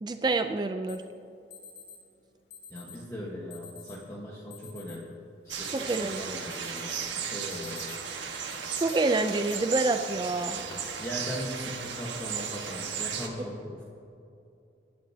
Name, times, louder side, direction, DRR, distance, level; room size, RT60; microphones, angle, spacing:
voice 1, 0.0-1.0 5.7-6.3 8.4-8.5 8.8-10.6, right 3 dB, 25° right, 7 dB, 0.4 m, -27 dB
Alarm, 0.9-1.0 1.5-2.0 2.5-3.0 3.5-4.0 4.5-5.0 5.4-6.1 6.5-7.0 7.4-8.1 8.5-9.0 9.5-9.6 10.4-10.7, left 7 dB, 75° left, 2.3 m, -47 dB
voice 2, 2.7-5.1 5.4-8.0 10.5-13.8, equal, 15° left, -4 dB, 1.3 m, -39 dB
sound 1, 5.5-13.3, right 7 dB, 85° right, 1.4 m, -35 dB
25.0 x 11.0 x 2.8 m, 2.6 s
head